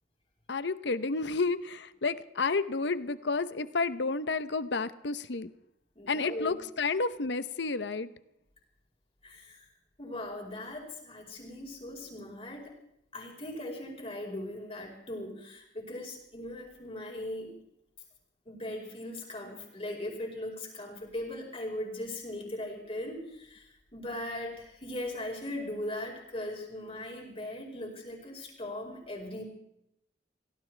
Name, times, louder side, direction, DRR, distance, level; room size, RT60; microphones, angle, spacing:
voice 1, 0.5-5.5 6.1-8.1, left 4 dB, 65° left, 13 dB, 0.8 m, -31 dB
voice 2, 5.9-6.5 9.2-9.7 10.0-12.7 13.1-17.5 18.4-29.4, left 1 dB, 30° left, -1 dB, 4.7 m, -39 dB
25.5 x 17.0 x 3.4 m, 0.79 s
head